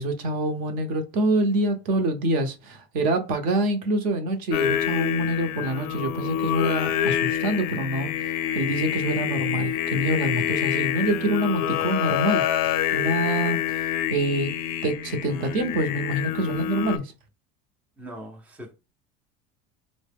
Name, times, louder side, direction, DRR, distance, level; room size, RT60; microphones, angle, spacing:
voice 1, 0.0-14.5 14.8-17.1, right 1 dB, 45° right, 0.7 m, -26 dB
Singing, 4.5-17.0, left 11 dB, 55° left, 0.4 m, -27 dB
voice 2, 18.0-18.7, equal, 5° right, 0.5 m, -40 dB
3.9 x 2.1 x 3.4 m
cardioid pair, 165°, 19 cm